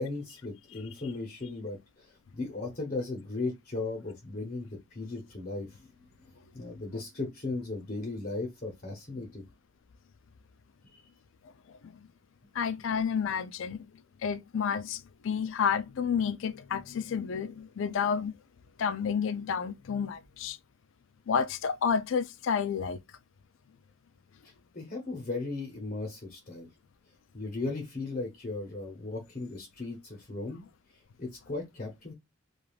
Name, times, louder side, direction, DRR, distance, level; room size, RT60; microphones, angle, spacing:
voice 1, 0.0-5.9 6.2-9.4 24.4-26.7 27.3-30.6 31.2-32.1, left 3 dB, 40° left, 0.8 m, -37 dB
voice 2, 12.5-13.9 14.2-18.3 18.8-20.6 21.3-23.0, left 6 dB, 65° left, 0.4 m, -30 dB
3.2 x 2.4 x 2.3 m
head